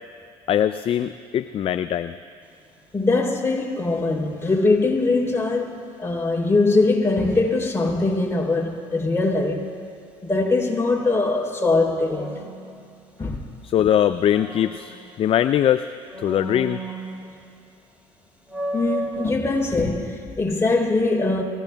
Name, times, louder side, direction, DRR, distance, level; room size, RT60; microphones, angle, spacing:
voice 1, 0.5-2.1 13.6-15.8 16.2-16.8, left 10 dB, 40° left, 0.4 m, -21 dB
sound 1, 2.4-2.8 12.1-13.5 13.9-15.6 16.1-17.6 18.0-18.1 18.5-19.3, right 2 dB, 10° right, 2.7 m, -34 dB
voice 2, 2.9-9.7 10.2-12.3 13.2-13.4 18.7-21.4, left 3 dB, 20° left, 3.5 m, -22 dB
30.0 x 15.5 x 2.3 m
hypercardioid pair, 65°, 14 cm